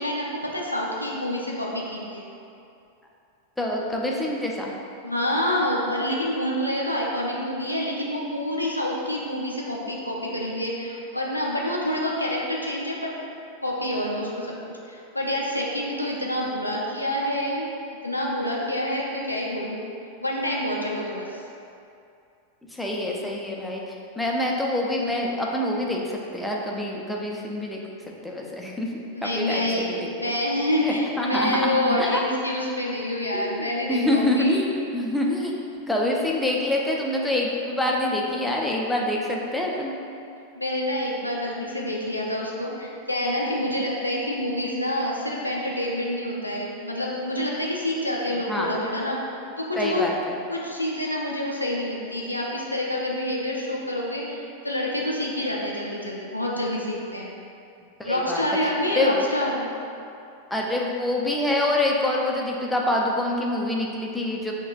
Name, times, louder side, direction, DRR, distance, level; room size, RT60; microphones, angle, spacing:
voice 1, 0.0-2.3 5.0-13.1 13.6-17.7 18.0-19.8 20.2-21.4 29.1-34.6 40.5-49.2 49.6-50.1 50.5-57.3 58.1-59.7, left 1 dB, 85° left, -3 dB, 0.4 m, -27 dB
voice 2, 3.6-4.7 22.7-27.8 28.2-28.9 29.2-30.3 30.8-32.2 33.3-35.5 35.9-39.9 48.5-48.7 49.8-50.4 58.0-59.2 60.5-64.5, left 1 dB, 5° left, -2 dB, 0.4 m, -26 dB
5.4 x 2.2 x 2.4 m, 2.6 s
figure-of-eight pair, 90°, 0 cm